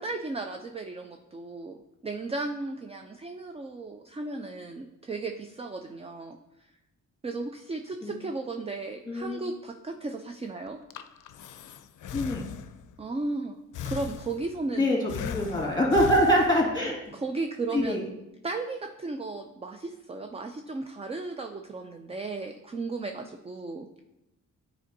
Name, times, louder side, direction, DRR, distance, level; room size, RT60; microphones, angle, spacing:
voice 1, 0.0-6.4 7.2-10.8 13.0-13.6 13.9-14.9 17.1-18.0 18.4-23.9, right 3 dB, 20° right, 5 dB, 0.4 m, -35 dB
voice 2, 9.1-9.5 12.1-12.5 14.8-17.0 17.7-18.1, equal, 15° left, -2 dB, 2.1 m, -24 dB
Breathing, 10.7-13.0 13.7-14.7 15.1-16.9, left 8 dB, 65° left, 0.5 m, -38 dB
9.1 x 4.3 x 2.7 m, 0.92 s
cardioid pair, 80°, 33 cm